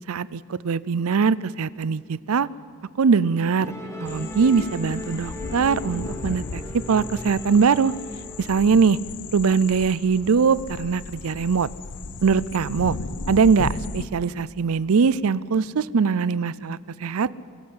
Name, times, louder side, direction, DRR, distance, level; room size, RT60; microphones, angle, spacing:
voice 1, 0.1-2.5 3.0-3.7 4.0-7.9 8.4-9.0 9.3-11.7 12.2-13.0 13.3-17.3, right 5 dB, 70° right, 20 dB, 0.5 m, -21 dB
Musical instrument, 3.6-10.2, equal, 15° left, 2.3 m, -37 dB
sound 1, 4.1-14.1, left 4 dB, 90° left, 0.8 m, -36 dB
23.0 x 17.0 x 7.9 m, 2.1 s
head